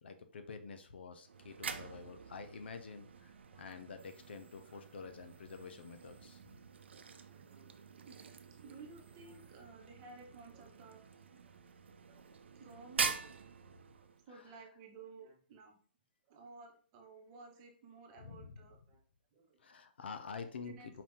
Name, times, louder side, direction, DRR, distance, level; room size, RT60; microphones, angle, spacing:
voice 1, 0.0-6.6 18.2-18.5 19.6-21.0, left 5 dB, 70° left, 7 dB, 0.9 m, -48 dB
sound 1, 1.2-14.3, right 5 dB, 85° right, 0.6 m, -45 dB
voice 2, 3.5-3.9 4.6-4.8 6.9-7.0 7.3-7.8 8.1-11.6 12.1-13.2 13.8-15.8 16.3-19.0 19.3-19.6 20.6-21.0, right 4 dB, 30° right, 2 dB, 1.1 m, -56 dB
4.8 x 2.8 x 3.7 m, 0.42 s
hypercardioid pair, 155°, 6 cm